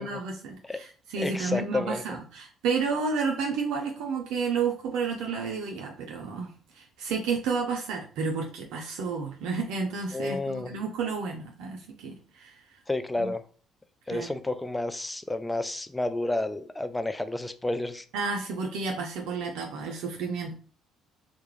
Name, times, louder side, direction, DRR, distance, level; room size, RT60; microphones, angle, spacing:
voice 1, 0.0-12.5 13.2-13.3 14.1-14.3 18.1-20.5, right 5 dB, 80° right, 1 dB, 0.4 m, -31 dB
voice 2, 1.2-2.0 10.1-10.7 12.9-13.4 14.1-18.0, left 2 dB, 10° left, 11 dB, 0.3 m, -30 dB
2.3 x 2.0 x 3.0 m, 0.42 s
supercardioid pair, 70°, 0 cm